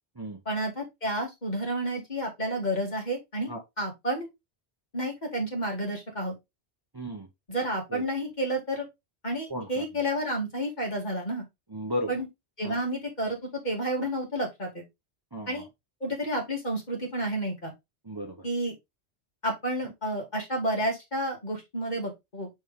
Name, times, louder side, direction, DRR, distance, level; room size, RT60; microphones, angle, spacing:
voice 1, 0.5-3.5 3.8-4.3 4.9-6.4 7.5-8.9 9.2-11.4 12.1-12.3 12.6-13.4 13.6-14.8 15.5-15.7 16.0-17.7 18.4-18.7 19.4-22.5, right 1 dB, 40° left, 2.6 m, -30 dB
voice 2, 6.9-7.3 7.9-8.0 9.5-9.8 11.7-12.1 12.6-12.8 15.3-15.5 18.0-18.5, equal, 25° right, 0.9 m, -34 dB
6.1 x 4.4 x 3.6 m
omnidirectional pair, 1.1 m